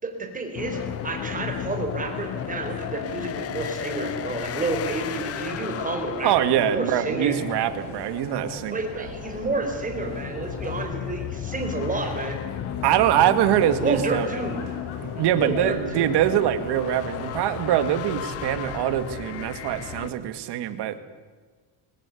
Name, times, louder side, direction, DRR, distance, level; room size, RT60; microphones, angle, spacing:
voice 1, 0.0-7.4 8.7-12.4 13.8-14.6 15.3-16.1, right 3 dB, 15° right, 4 dB, 4.6 m, -30 dB
sound 1, 0.5-20.1, left 11 dB, 35° left, 0.6 m, -35 dB
sound 2, 0.7-20.1, left 4 dB, 90° left, 6.7 m, -40 dB
voice 2, 6.2-9.1 12.8-14.3 15.0-21.0, right 11 dB, 60° right, 11 dB, 2.1 m, -23 dB
22.5 x 19.5 x 8.5 m, 1.5 s
cardioid pair, 150°, 45 cm